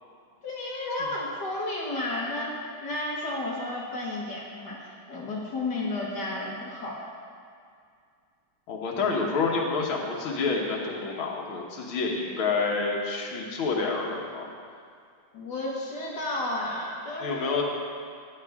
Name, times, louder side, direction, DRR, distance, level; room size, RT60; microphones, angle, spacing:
voice 1, 0.4-2.5 2.8-7.3 15.3-17.6, left 2 dB, 55° left, -4 dB, 2.1 m, -32 dB
voice 2, 8.7-14.5 17.2-17.6, left 4 dB, 85° left, -1 dB, 2.1 m, -28 dB
14.5 x 10.5 x 3.6 m, 2.2 s
omnidirectional pair, 2.2 m